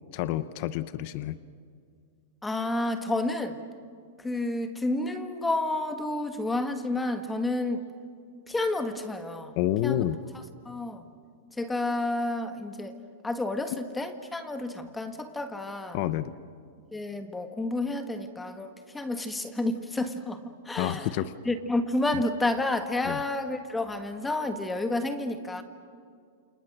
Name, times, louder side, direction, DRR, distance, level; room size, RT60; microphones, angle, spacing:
voice 1, 0.1-1.4 9.6-10.2 15.9-16.3 20.8-21.3 23.1-23.2, left 13 dB, 40° left, 14 dB, 0.9 m, -28 dB
voice 2, 2.4-3.6 4.2-7.8 8.5-9.6 9.8-10.0 10.6-11.0 11.6-12.9 13.2-16.0 16.9-20.4 20.6-21.1 21.4-25.6, left 2 dB, 5° left, 8 dB, 1.5 m, -30 dB
28.5 x 28.5 x 6.7 m, 2.2 s
supercardioid pair, 165°, 0 cm